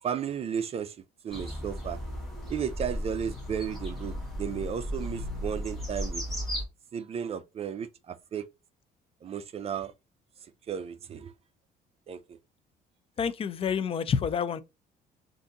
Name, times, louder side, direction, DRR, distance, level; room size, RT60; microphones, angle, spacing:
voice 1, 0.0-1.0 1.2-2.0 2.5-6.2 6.9-8.4 9.2-9.9 10.7-11.3 12.1-12.2, right 8 dB, 35° right, 0.5 m, -34 dB
sound 1, 1.3-6.6, equal, ahead, 1.5 m, -35 dB
voice 2, 13.2-14.6, left 7 dB, 35° left, 0.4 m, -28 dB
3.5 x 2.6 x 2.6 m
cardioid pair, 110°, 17 cm